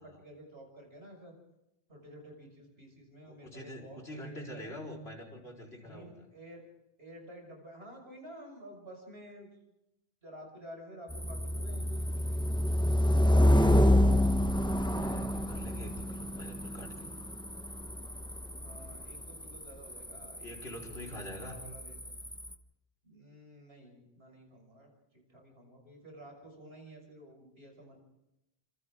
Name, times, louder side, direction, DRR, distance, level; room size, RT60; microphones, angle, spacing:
voice 1, 0.0-1.3 1.9-4.7 5.8-6.6 7.0-9.5 10.2-12.5 18.6-20.8 21.0-22.1 23.0-24.9 25.3-28.0, equal, 75° right, 1 dB, 6.7 m, -51 dB
voice 2, 3.2-6.3 13.1-17.1 20.4-21.6, left 1 dB, 80° left, 2 dB, 4.8 m, -46 dB
sound 1, 11.1-22.5, left 1 dB, 5° left, 1.1 m, -28 dB
28.5 x 26.0 x 3.7 m, 0.90 s
omnidirectional pair, 1.1 m